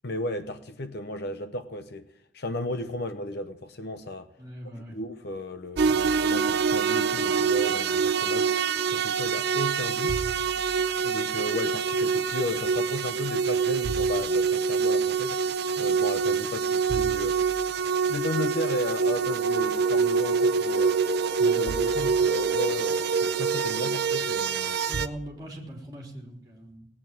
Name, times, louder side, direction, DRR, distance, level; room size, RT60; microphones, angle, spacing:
voice 1, 0.0-2.1 2.3-4.3 4.6-8.5 8.9-10.2 11.0-15.4 15.8-17.4 18.1-21.0 21.4-24.8, left 1 dB, 55° left, 0.8 m, -34 dB
voice 2, 4.4-5.0 24.9-26.9, equal, 20° right, 3.6 m, -41 dB
sound 1, 5.8-25.1, right 5 dB, 55° right, 0.6 m, -25 dB
18.0 x 8.8 x 7.6 m
head